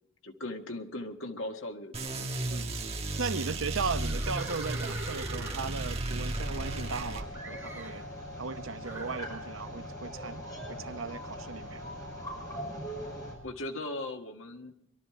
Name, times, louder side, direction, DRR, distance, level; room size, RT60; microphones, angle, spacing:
voice 1, 0.2-2.5 13.4-14.8, left 1 dB, 75° left, 1.7 m, -39 dB
sound 1, 1.9-7.2, right 2 dB, 30° right, 1.4 m, -34 dB
voice 2, 3.2-8.1 8.4-10.4 10.7-11.9, right 4 dB, 80° right, 0.8 m, -37 dB
Livestock farm animals working animals, 3.9-7.0 7.3-8.0 8.8-9.2, right 2 dB, 10° right, 2.7 m, -43 dB
sound 2, 6.3-13.4, equal, 15° left, 5.8 m, -41 dB
22.5 x 12.5 x 4.8 m
head